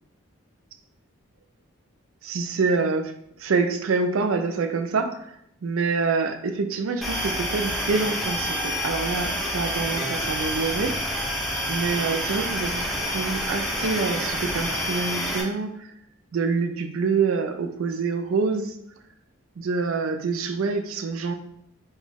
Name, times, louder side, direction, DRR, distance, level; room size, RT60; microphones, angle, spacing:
voice 1, 2.2-3.1 3.4-5.2 5.6-10.9 11.7-15.9 16.3-18.7 19.6-21.3, right 4 dB, 75° right, 8 dB, 0.4 m, -26 dB
sound 1, 7.0-15.4, equal, ahead, 0.5 m, -28 dB
4.3 x 2.3 x 3.4 m, 0.74 s
head